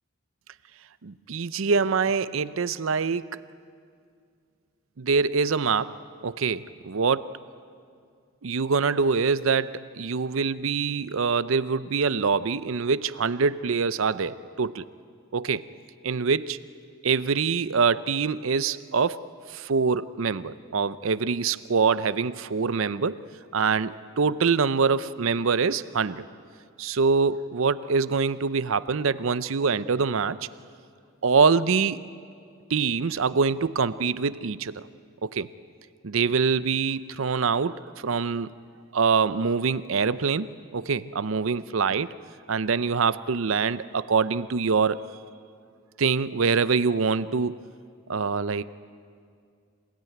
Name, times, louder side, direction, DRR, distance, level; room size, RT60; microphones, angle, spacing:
voice 1, 1.0-3.3 5.0-5.9 6.2-7.3 8.4-14.8 15.3-15.6 16.0-16.6 17.0-19.2 19.5-23.2 23.5-26.2 26.8-30.4 31.2-32.0 32.7-34.9 35.2-35.5 36.0-38.5 38.9-40.5 40.7-42.1 42.5-45.0 46.0-47.6 48.1-48.6, right 5 dB, 75° right, 15 dB, 0.6 m, -24 dB
27.5 x 17.0 x 9.2 m, 2.2 s
head